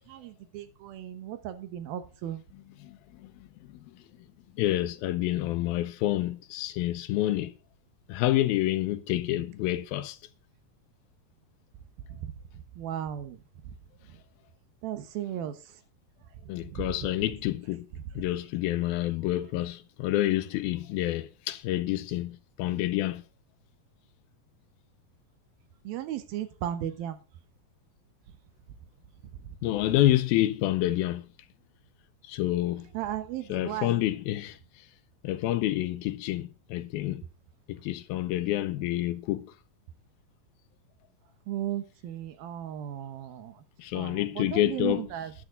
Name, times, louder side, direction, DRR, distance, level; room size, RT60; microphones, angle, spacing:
voice 1, 0.1-2.4 12.1-13.7 14.1-14.2 14.8-15.8 16.4-17.1 17.9-18.0 25.8-27.2 29.2-29.5 32.9-34.1 41.5-43.6 43.9-45.3, right 11 dB, 80° right, 3.0 m, -36 dB
voice 2, 2.8-3.3 4.6-7.5 8.1-10.2 16.5-17.9 18.2-23.2 29.6-31.2 32.3-32.9 33.5-34.6 35.2-37.2 37.7-39.5 43.8-45.0, left 15 dB, 85° left, 2.7 m, -28 dB
13.0 x 10.5 x 3.9 m
omnidirectional pair, 4.2 m